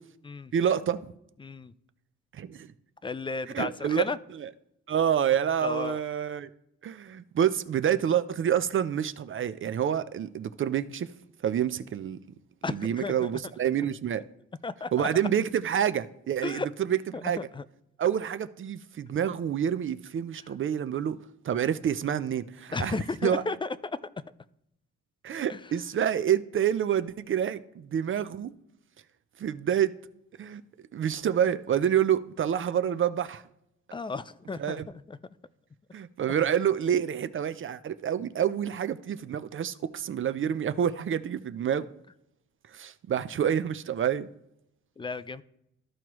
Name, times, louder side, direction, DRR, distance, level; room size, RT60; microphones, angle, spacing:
voice 1, 0.5-1.0 2.3-2.7 3.5-4.0 4.3-4.5 4.9-6.5 6.8-11.1 11.4-12.2 12.7-14.2 14.9-17.5 18.0-21.2 21.4-23.4 25.2-28.5 29.4-29.9 30.4-30.6 30.9-33.4 34.6-34.9 35.9-41.9 42.7-44.3, right 9 dB, 45° right, 0.5 m, -28 dB
voice 2, 1.4-1.7 3.0-4.2 5.6-6.0 12.6-13.3 14.6-15.1 16.4-16.7 17.4-17.6 22.7-24.0 25.5-25.6 33.9-34.7 35.1-35.2 45.0-45.4, left 3 dB, 15° left, 0.4 m, -33 dB
13.5 x 4.6 x 3.0 m
cardioid pair, 90°, 30 cm